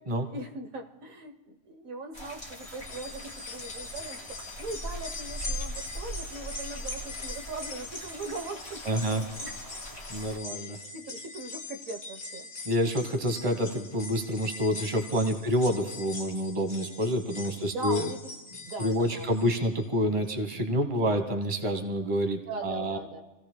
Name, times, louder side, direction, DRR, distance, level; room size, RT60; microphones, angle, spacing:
voice 1, 0.3-9.5 10.5-12.5 15.4-15.5 17.7-18.2 18.7-19.3 21.0-21.3 22.5-23.2, right 3 dB, 80° right, 6 dB, 1.5 m, -40 dB
sound 1, 2.1-10.4, right 1 dB, 25° left, 2.3 m, -41 dB
sound 2, 2.5-19.8 20.2-20.3 21.4-21.5, left 3 dB, 45° left, 1.6 m, -42 dB
voice 2, 8.8-9.2 10.1-10.8 12.6-18.1 18.8-23.0, equal, 25° right, 6 dB, 1.2 m, -28 dB
28.5 x 16.5 x 2.2 m, 1.1 s
omnidirectional pair, 1.4 m